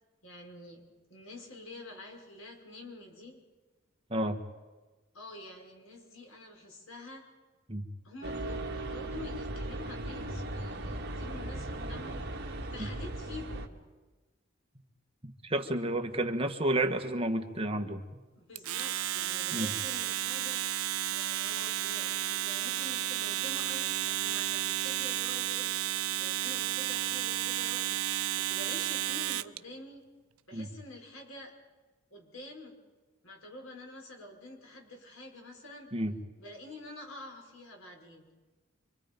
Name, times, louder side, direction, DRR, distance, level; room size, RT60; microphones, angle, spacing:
voice 1, 0.2-3.4 5.1-7.3 8.0-13.7 18.3-28.0 28.3-30.1 30.5-31.6 32.1-32.8 33.2-35.9 36.4-38.3, left 2 dB, 75° left, 2 dB, 5.2 m, -48 dB
sound 1, 8.2-13.7, right 1 dB, 50° right, 2.0 m, -37 dB
voice 2, 15.4-18.0 19.5-19.7 30.5-30.7 35.9-36.1, right 1 dB, 25° right, 5 dB, 1.5 m, -30 dB
Domestic sounds home sounds, 18.6-29.6, right 13 dB, 90° right, 0.6 m, -32 dB
27.0 x 24.5 x 5.3 m, 1.3 s
head